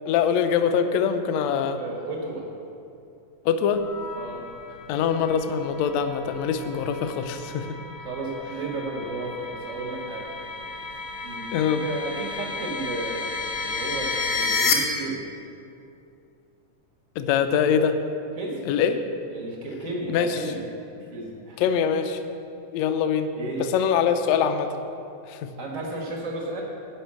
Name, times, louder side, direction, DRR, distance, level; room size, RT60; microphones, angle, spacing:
voice 1, 0.1-1.8 3.4-3.8 4.9-7.7 11.5-11.8 17.2-18.0 18.7-19.0 20.1-20.4 21.6-22.2 22.7-23.3 23.6-24.7 25.3-25.5, left 7 dB, 75° left, 8 dB, 1.6 m, -23 dB
voice 2, 1.7-2.5 4.2-5.0 7.5-7.7 8.0-10.3 11.2-15.2 18.4-18.7 19.3-20.6 20.9-21.6 23.3-23.9 25.6-26.6, right 2 dB, 80° right, -1 dB, 0.7 m, -34 dB
sound 1, 3.8-14.7, left 4 dB, 60° left, 1.3 m, -32 dB
11.5 x 5.5 x 8.5 m, 2.6 s
omnidirectional pair, 3.6 m